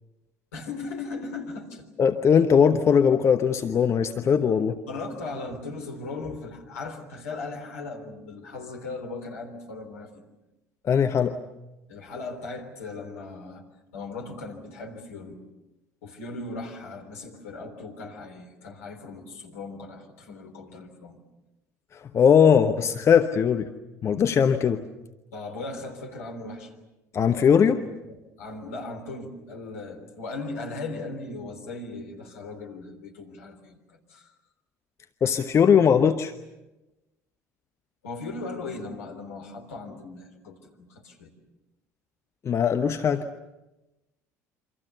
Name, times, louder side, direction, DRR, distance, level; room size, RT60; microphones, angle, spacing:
voice 1, 0.5-1.9 4.9-10.2 11.9-13.6 13.9-15.4 16.0-21.2 25.3-26.7 28.0-34.3 38.0-41.3, left 3 dB, 70° left, 3 dB, 3.6 m, -38 dB
voice 2, 2.0-4.8 10.8-11.4 22.1-23.7 24.0-24.8 27.1-27.8 35.2-36.3 42.4-43.3, left 7 dB, 35° left, 8 dB, 1.0 m, -20 dB
28.5 x 25.5 x 7.0 m, 1.0 s
figure-of-eight pair, 60°, 9 cm